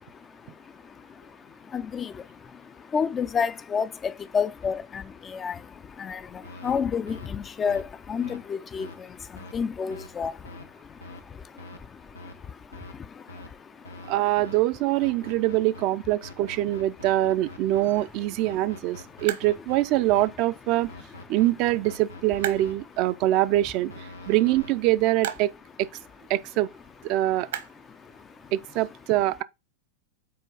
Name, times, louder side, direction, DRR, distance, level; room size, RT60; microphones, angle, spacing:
voice 1, 0.0-14.2 15.2-15.3 18.5-18.6 19.1-19.3 20.9-21.0 24.2-24.3 27.8-28.5, left 6 dB, 20° left, 0.4 m, -32 dB
sound 1, 6.4-6.7 7.1-7.3 7.7-7.8 8.2-8.4 8.8-8.9 9.4-9.5 9.9-10.1 10.4-10.7 11.0-11.2 11.6-11.8 12.1-12.3 12.7-12.9 13.3-13.5 13.8-14.1 14.4-14.6 15.0-15.8 16.2-18.0 18.4-20.3 20.9-22.7 23.9-24.7, left 2 dB, 85° left, 1.3 m, -43 dB
voice 2, 14.1-20.9 21.3-25.5 25.8-25.9 26.3-26.7 27.0-27.5 28.5-29.4, right 15 dB, 40° right, 0.5 m, -24 dB
sound 2, 15.4-28.6, right 10 dB, 60° right, 1.1 m, -43 dB
7.6 x 4.5 x 3.9 m
figure-of-eight pair, 90°, 0 cm